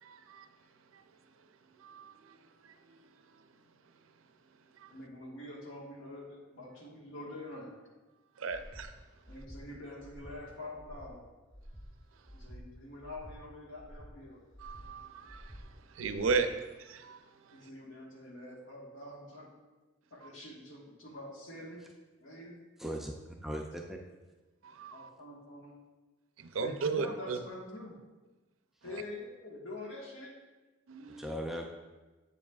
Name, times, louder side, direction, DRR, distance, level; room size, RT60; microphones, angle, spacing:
voice 1, 0.0-0.5 0.9-1.0 1.8-2.4 2.6-3.0 4.8-4.9 8.4-8.9 14.6-16.5 16.8-17.6 20.2-20.3 24.6-25.1 26.4-27.4 30.9-31.2, right 5 dB, 80° right, 8 dB, 0.5 m, -36 dB
voice 2, 4.9-7.8 9.3-11.3 12.3-14.4 17.5-19.5 20.1-21.8 22.2-22.5 24.9-25.7 26.6-28.0 28.8-30.4, left 1 dB, 70° left, -2 dB, 1.5 m, -46 dB
Breathing, 8.5-8.9 9.2-9.6 10.0-10.4 10.7-11.1 11.5-11.9 12.2-12.6 13.0-13.4 13.7-14.1 14.5-14.9 15.3-15.6 16.0-16.4, equal, 20° left, 1.4 m, -50 dB
voice 3, 22.8-24.0 28.8-29.0 31.2-31.6, equal, ahead, 1 dB, 0.4 m, -39 dB
7.7 x 7.1 x 2.4 m, 1.2 s
head